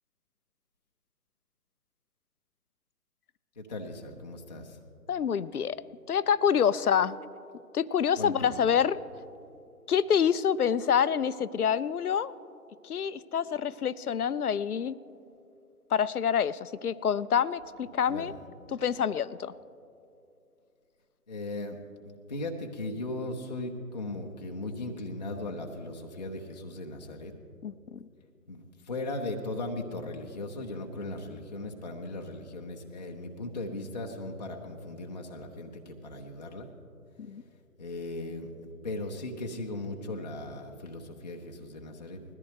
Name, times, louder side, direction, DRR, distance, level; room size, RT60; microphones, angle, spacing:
voice 1, 3.6-4.8 8.2-8.6 18.1-18.4 21.3-21.8 22.1-27.3 28.5-36.7 37.8-42.2, left 2 dB, 30° left, 1 dB, 0.6 m, -38 dB
voice 2, 5.1-5.8 6.1-7.2 7.7-9.0 9.9-12.3 12.8-15.0 15.9-18.3 18.7-19.5 27.6-28.1 37.2-37.4, left 8 dB, 70° left, 18 dB, 0.5 m, -27 dB
20.5 x 14.0 x 3.2 m, 2.6 s
figure-of-eight pair, 145°, 46 cm